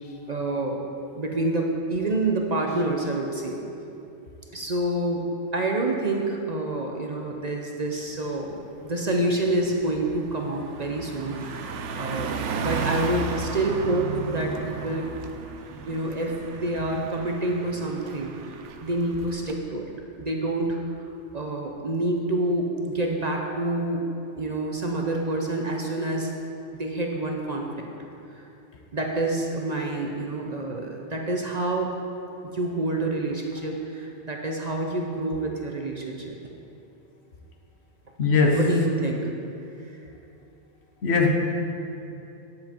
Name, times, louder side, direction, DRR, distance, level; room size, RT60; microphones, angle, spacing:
voice 1, 0.3-0.9 1.1-3.6 4.5-15.1 15.9-19.9 20.2-20.8 21.3-24.0 24.4-26.3 26.8-27.9 28.3-28.4 28.9-31.9 32.5-36.5 38.5-39.3, right 2 dB, 40° right, 1 dB, 0.7 m, -27 dB
Car passing by, 8.0-8.2 8.6-19.6, right 4 dB, 90° right, 1.0 m, -34 dB
voice 2, 38.2-38.6 41.0-41.3, left 4 dB, 65° left, 2 dB, 1.2 m, -19 dB
10.0 x 7.6 x 4.4 m, 2.8 s
omnidirectional pair, 1.2 m